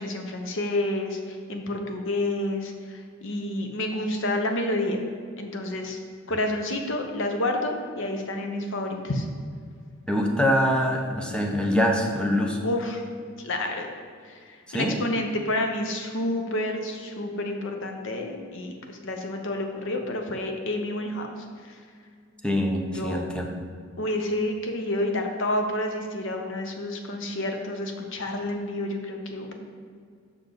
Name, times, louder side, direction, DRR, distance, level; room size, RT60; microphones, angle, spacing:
voice 1, 0.0-5.0 5.4-6.0 6.3-9.3 12.6-13.0 13.4-13.9 14.2-21.8 22.9-23.2 24.0-29.5, left 1 dB, 65° left, 4 dB, 0.9 m, -29 dB
voice 2, 10.1-12.6 14.7-15.0 22.4-23.5, equal, 5° left, 1 dB, 0.8 m, -24 dB
6.9 x 6.1 x 3.9 m, 2.1 s
head